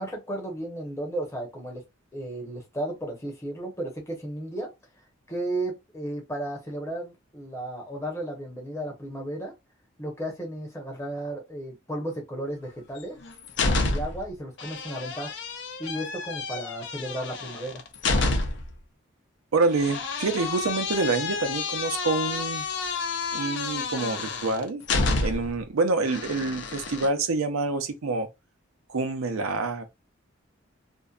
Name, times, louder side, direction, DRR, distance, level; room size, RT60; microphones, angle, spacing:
voice 1, 0.0-1.8 2.1-4.7 5.3-9.5 10.0-13.2 13.7-15.3 15.8-17.8, right 1 dB, 15° left, 0.7 m, -34 dB
sound 1, 13.0-14.3 14.6-18.7 19.7-25.6 26.1-27.1, left 3 dB, 55° left, 0.4 m, -29 dB
voice 2, 19.5-22.6 23.3-24.8 25.2-28.3 28.9-29.9, right 3 dB, 85° right, 0.5 m, -27 dB
2.6 x 2.1 x 2.3 m
head